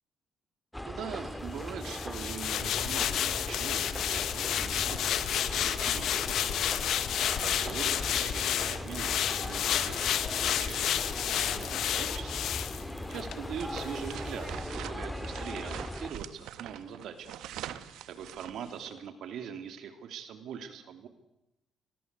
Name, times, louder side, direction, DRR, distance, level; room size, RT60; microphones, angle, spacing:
sound 1, 0.7-16.1, left 1 dB, 5° left, 2.3 m, -39 dB
voice 1, 0.8-6.7 7.4-12.5 13.1-14.5 14.7-17.3 18.1-21.1, right 7 dB, 70° right, 9 dB, 2.9 m, -42 dB
sound 2, 1.8-13.4 13.7-13.9, left 10 dB, 70° left, 1.8 m, -31 dB
sound 3, 13.5-19.0, right 11 dB, 90° right, 1.5 m, -44 dB
30.0 x 21.5 x 8.3 m, 0.92 s
cardioid pair, 135°, 0 cm